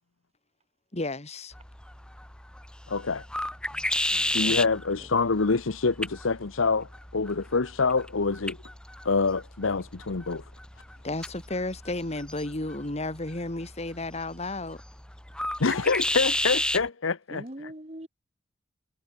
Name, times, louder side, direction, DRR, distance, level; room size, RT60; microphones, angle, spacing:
voice 1, 0.9-1.5 11.0-14.8, left 2 dB, 35° left, 2.1 m, -33 dB
sound 1, 1.5-16.9, left 1 dB, 5° left, 0.7 m, -34 dB
voice 2, 2.9-3.2 4.3-8.6 9.0-10.4 15.6-17.4, left 4 dB, 85° left, 0.9 m, -26 dB
voice 3, 3.7-5.1 17.3-18.1, right 1 dB, 35° right, 2.9 m, -44 dB
head